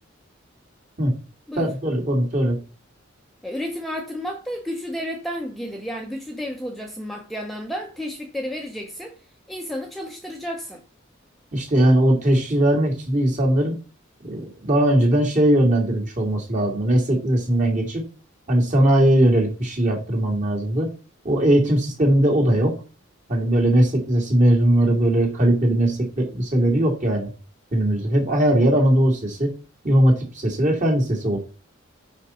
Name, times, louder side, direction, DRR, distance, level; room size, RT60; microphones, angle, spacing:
voice 1, 1.6-2.6 11.5-13.8 14.2-18.0 18.5-20.9 21.2-22.7 23.3-27.3 27.7-29.5 29.8-31.4, right 1 dB, 40° right, 2.4 m, -19 dB
voice 2, 3.4-9.2 9.5-10.8, equal, ahead, 0.8 m, -31 dB
5.7 x 5.3 x 4.3 m
head